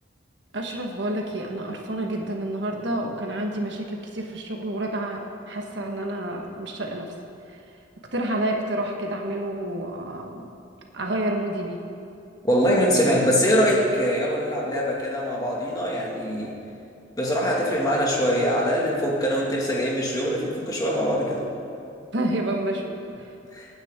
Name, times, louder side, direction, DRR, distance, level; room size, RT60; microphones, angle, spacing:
voice 1, 0.5-7.1 7.4-7.7 8.1-10.5 10.9-11.8 22.1-23.3, right 1 dB, 60° right, 1 dB, 1.4 m, -29 dB
voice 2, 12.4-16.5 17.2-21.4 23.5-23.7, equal, 20° left, -3 dB, 2.1 m, -23 dB
23.5 x 9.6 x 3.7 m, 2.6 s
head